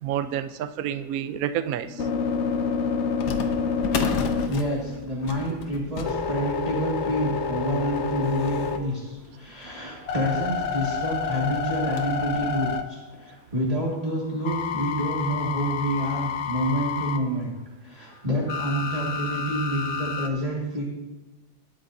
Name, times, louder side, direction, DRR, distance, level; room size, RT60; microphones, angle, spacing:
voice 1, 0.0-2.0, right 10 dB, 85° right, 11 dB, 0.7 m, -29 dB
sound 1, 1.7-5.2 5.6-9.2 9.7-13.3 14.4-17.2 18.5-20.3, left 6 dB, 80° left, 0.6 m, -29 dB
sound 2, 1.8-1.9 3.2-10.1 10.7-10.8 11.0-11.1 11.5-12.3 12.8-12.9 13.7-13.8 14.2-14.3 15.7-15.9 16.4-16.5 17.1-17.2, left 5 dB, 60° left, 1.3 m, -35 dB
voice 2, 4.5-17.5 17.8-20.8, right 1 dB, 20° right, -6 dB, 1.8 m, -28 dB
19.5 x 9.3 x 2.7 m, 1.1 s
omnidirectional pair, 2.3 m